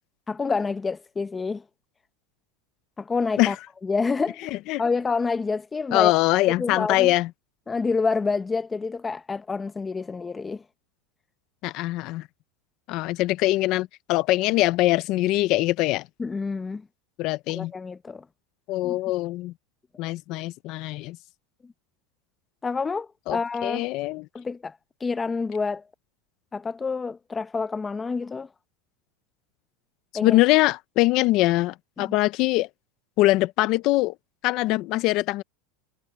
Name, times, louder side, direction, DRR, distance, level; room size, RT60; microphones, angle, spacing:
voice 1, 0.3-1.6 3.0-3.6 3.8-4.4 4.8-6.1 6.6-7.1 7.7-10.6 16.2-16.9 17.5-18.2 18.8-19.0 21.6-21.7 22.6-23.9 24.3-25.8 26.5-28.5 30.1-30.4 32.0-32.2, left 4 dB, 15° left, 0.9 m, -28 dB
voice 2, 5.9-7.3 11.6-12.3 12.9-16.1 17.2-17.7 18.7-19.5 20.0-21.2 23.3-24.2 30.2-32.7 33.2-34.1 34.4-35.4, left 18 dB, 50° left, 0.7 m, -23 dB
supercardioid pair, 145°, 0 cm